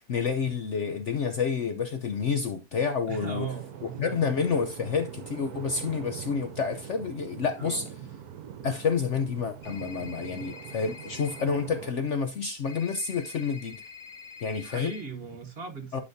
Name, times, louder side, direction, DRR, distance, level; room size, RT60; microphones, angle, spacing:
voice 1, 0.0-3.5 4.0-7.8 8.6-13.8 14.4-14.9 15.9-16.0, left 5 dB, 55° left, 0.9 m, -29 dB
voice 2, 3.1-4.3 7.6-8.1 14.6-16.0, right 5 dB, 40° right, 1.4 m, -38 dB
sound 1, 3.2-11.9, right 9 dB, 65° right, 1.3 m, -43 dB
sound 2, 9.6-11.4 12.7-15.0, left 5 dB, 80° left, 2.1 m, -46 dB
11.5 x 5.5 x 2.7 m
omnidirectional pair, 1.8 m